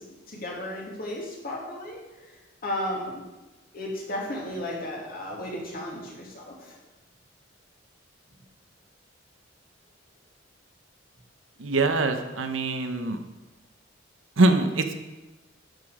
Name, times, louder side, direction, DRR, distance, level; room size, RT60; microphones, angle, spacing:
voice 1, 0.0-3.2 3.7-6.8 11.7-11.8, left 1 dB, 50° left, -3 dB, 2.6 m, -35 dB
voice 2, 11.6-13.2 14.4-14.9, right 2 dB, 80° right, 7 dB, 1.0 m, -23 dB
11.5 x 6.8 x 5.0 m, 1.1 s
head